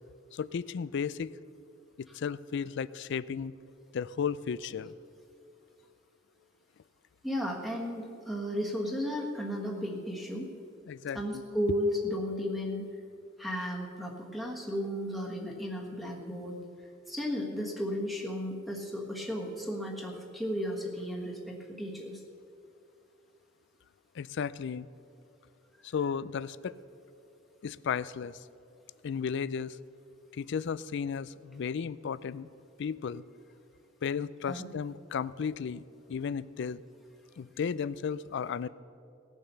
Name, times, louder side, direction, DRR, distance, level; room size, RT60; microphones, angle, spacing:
voice 1, 0.3-1.3 2.0-3.5 3.9-4.9 10.9-11.4 24.2-24.9 25.9-26.7 27.6-28.4 29.0-29.8 30.3-32.5 32.8-33.2 34.0-35.8 36.1-36.8 37.4-38.7, left 6 dB, 60° left, 18 dB, 0.4 m, -34 dB
voice 2, 7.2-10.5 11.1-12.9 13.4-16.6 17.1-22.2 34.5-34.6, equal, ahead, -1 dB, 1.4 m, -34 dB
18.0 x 7.2 x 6.8 m, 2.6 s
head